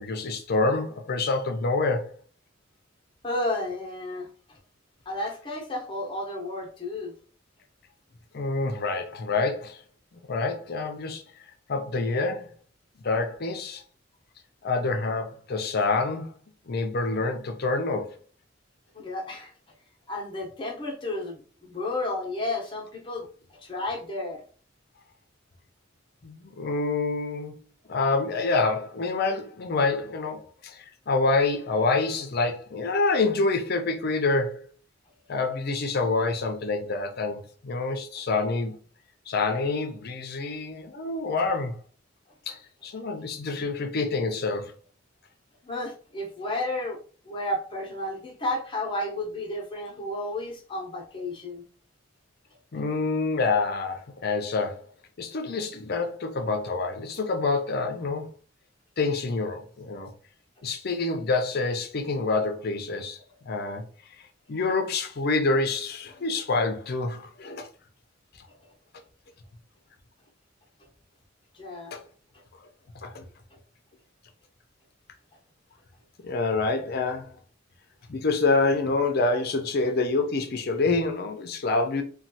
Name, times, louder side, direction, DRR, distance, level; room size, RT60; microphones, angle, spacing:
voice 1, 0.0-2.1 8.3-9.8 10.3-11.2 11.7-12.5 13.0-13.8 14.6-16.3 16.7-18.1 26.2-27.6 27.9-34.7 35.3-38.8 39.3-41.8 42.5-44.7 52.7-54.8 55.2-58.3 59.0-60.1 60.6-63.2 63.5-63.8 64.5-67.7 71.9-72.0 73.0-73.2 76.2-77.3 78.1-82.0, left 3 dB, 55° left, 0.5 m, -27 dB
voice 2, 3.2-4.6 5.1-7.1 18.9-19.5 20.1-24.4 45.6-47.0 47.2-51.6 68.5-68.6 71.5-71.9 72.3-72.4, left 1 dB, 25° left, 0.8 m, -32 dB
3.1 x 2.2 x 2.7 m
head